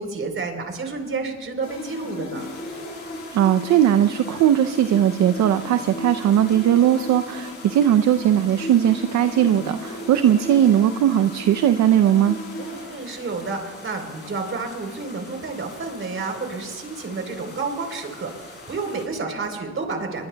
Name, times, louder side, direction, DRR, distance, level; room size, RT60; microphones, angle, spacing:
voice 1, 0.0-2.5 12.6-20.3, right 4 dB, 45° right, 3 dB, 3.7 m, -30 dB
sound 1, 1.6-13.5, left 1 dB, 75° left, 4.7 m, -36 dB
sound 2, 2.3-19.1, left 2 dB, 35° left, 6.2 m, -44 dB
voice 2, 3.3-12.4, right 10 dB, 65° right, 10 dB, 0.6 m, -18 dB
25.5 x 22.5 x 2.3 m, 1.5 s
cardioid pair, 90°, 30 cm